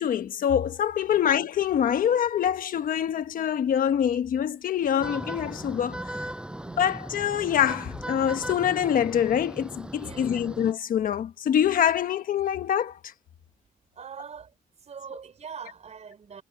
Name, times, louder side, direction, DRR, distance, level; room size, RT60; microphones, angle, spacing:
voice 1, 0.0-6.3 6.8-13.1, left 9 dB, 85° left, 1.3 m, -25 dB
sound 1, 5.0-10.7, right 1 dB, 5° right, 7.4 m, -38 dB
voice 2, 6.5-6.9 10.0-10.5 13.9-14.5 14.8-16.4, right 6 dB, 55° right, 5.1 m, -43 dB
cardioid pair, 115°, 14 cm